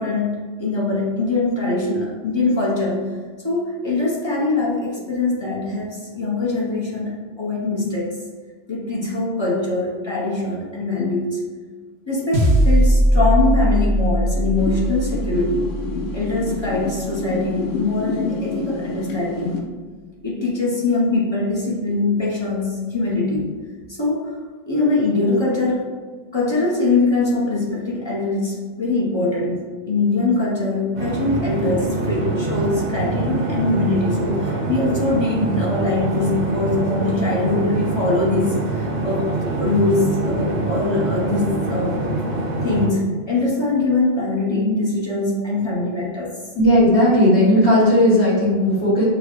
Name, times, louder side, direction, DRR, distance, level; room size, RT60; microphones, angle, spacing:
voice 1, 0.0-3.2 3.4-8.1 8.7-11.4 12.1-15.7 16.1-19.6 20.2-23.5 24.0-24.3 24.7-25.9 26.3-42.0 42.6-46.4, left 2 dB, 30° left, -5 dB, 0.6 m, -22 dB
sound 1, 12.3-16.9, equal, 90° right, 1.1 m, -19 dB
sound 2, 14.6-19.6, left 3 dB, 80° left, 1.0 m, -29 dB
sound 3, 30.9-42.9, right 3 dB, 45° right, 0.6 m, -25 dB
voice 2, 46.5-49.1, left 1 dB, 65° left, -8 dB, 1.7 m, -15 dB
6.3 x 2.2 x 2.9 m, 1.5 s
omnidirectional pair, 1.3 m